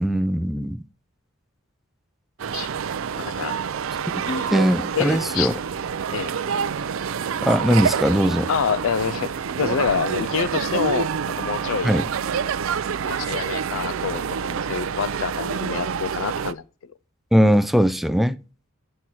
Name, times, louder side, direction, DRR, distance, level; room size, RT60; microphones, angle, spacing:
voice 1, 0.0-0.8 4.1-4.2 4.5-5.6 7.4-8.5 11.8-12.0 17.3-18.4, equal, ahead, 0.3 m, -20 dB
sound 1, 2.4-16.5, right 7 dB, 70° right, 0.4 m, -27 dB
voice 2, 3.1-3.5 4.2-4.5 4.9-5.5 6.1-6.3 8.5-9.3 9.6-11.9 13.0-16.6, left 7 dB, 70° left, 0.4 m, -27 dB
9.3 x 4.4 x 6.1 m
head